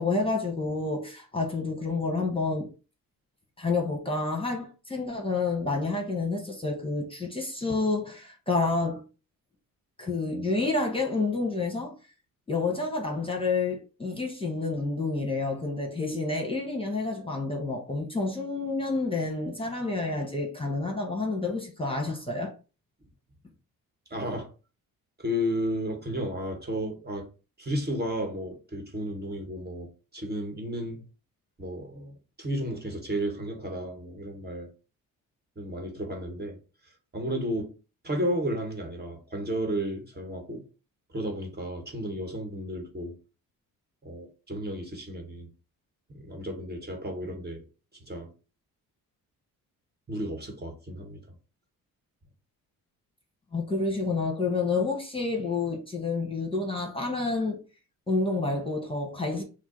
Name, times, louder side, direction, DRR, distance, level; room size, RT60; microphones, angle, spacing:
voice 1, 0.0-2.7 3.6-9.0 10.0-11.9 12.5-22.5 53.5-57.6 58.1-59.4, left 3 dB, 15° left, 1.2 m, -29 dB
voice 2, 24.1-24.5 25.2-27.3 27.6-31.0 31.6-34.7 35.6-36.6 36.8-37.7 38.0-40.6 41.1-43.1 44.0-45.5 46.1-47.6 47.9-48.3 50.1-51.2, equal, 25° right, 1.4 m, -33 dB
6.0 x 2.0 x 3.9 m
cardioid pair, 85°, 35 cm